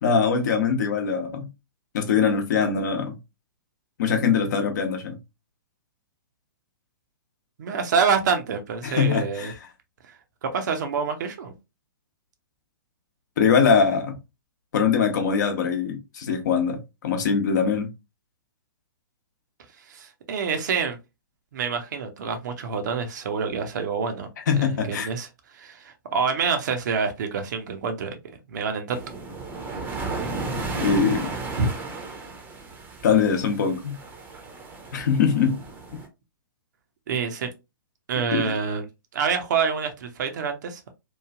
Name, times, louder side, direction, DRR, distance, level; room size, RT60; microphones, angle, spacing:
voice 1, 0.0-1.5 1.9-3.2 4.0-5.2 8.8-9.5 13.4-14.1 14.7-17.9 24.5-25.1 30.8-31.3 33.0-34.0 34.9-35.6 38.3-38.5, left 6 dB, 55° left, 0.8 m, -22 dB
voice 2, 7.6-9.5 10.4-11.5 19.9-21.0 21.5-24.3 24.6-25.3 25.5-28.2 28.5-29.0 31.6-31.7 37.1-37.5 38.1-38.8 39.1-40.8, right 5 dB, 55° right, 0.7 m, -26 dB
sound 1, 28.9-36.1, right 3 dB, 15° right, 0.7 m, -34 dB
3.1 x 2.3 x 2.3 m
figure-of-eight pair, 115°, 12 cm